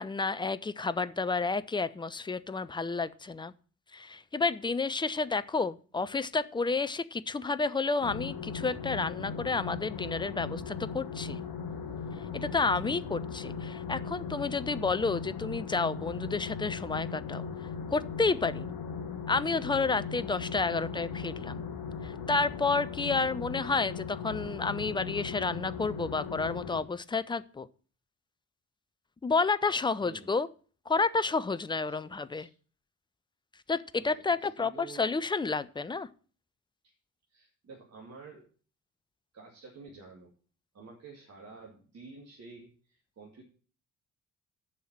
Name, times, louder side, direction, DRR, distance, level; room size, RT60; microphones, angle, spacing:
voice 1, 0.0-3.5 3.9-11.4 12.3-17.5 17.9-18.7 19.3-21.6 22.0-27.7 29.2-30.5 30.9-32.5 33.7-36.1, left 4 dB, 10° left, 15 dB, 0.4 m, -30 dB
sound 1, 8.0-26.8, left 5 dB, 60° left, 1.7 m, -38 dB
voice 2, 30.0-30.3 31.8-32.1 32.4-32.5 34.0-35.1 36.8-36.9 37.3-38.5 39.3-40.3 40.7-43.4, right 4 dB, 40° right, 0 dB, 2.3 m, -50 dB
7.7 x 5.5 x 7.4 m, 0.42 s
figure-of-eight pair, 45°, 40 cm